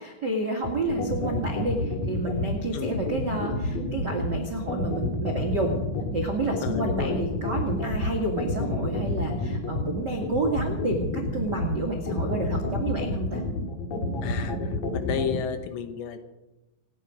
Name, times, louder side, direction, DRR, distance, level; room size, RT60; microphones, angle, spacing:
voice 1, 0.0-5.8 6.1-13.4, right 2 dB, 60° right, 2 dB, 1.1 m, -30 dB
sound 1, 0.6-15.4, left 2 dB, 50° left, 2.4 m, -29 dB
voice 2, 6.6-7.2 14.2-16.2, left 7 dB, 75° left, 8 dB, 3.3 m, -32 dB
28.0 x 9.4 x 5.0 m, 1.0 s
omnidirectional pair, 5.3 m